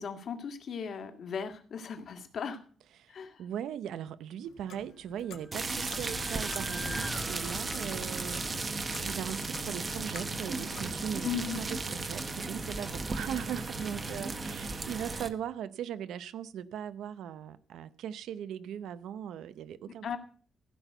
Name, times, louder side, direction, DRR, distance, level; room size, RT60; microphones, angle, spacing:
voice 1, 0.0-2.6 3.1-3.4 11.2-11.6 20.0-20.2, left 7 dB, 50° left, 1.9 m, -37 dB
voice 2, 3.0-20.2, right 9 dB, 85° right, 0.6 m, -39 dB
Clock, 4.4-10.9, left 8 dB, 75° left, 1.8 m, -51 dB
sound 1, 5.2-9.5, equal, 5° right, 0.5 m, -45 dB
sound 2, 5.5-15.3, right 3 dB, 25° right, 1.0 m, -35 dB
16.0 x 6.1 x 7.9 m
cardioid pair, 170°, 0 cm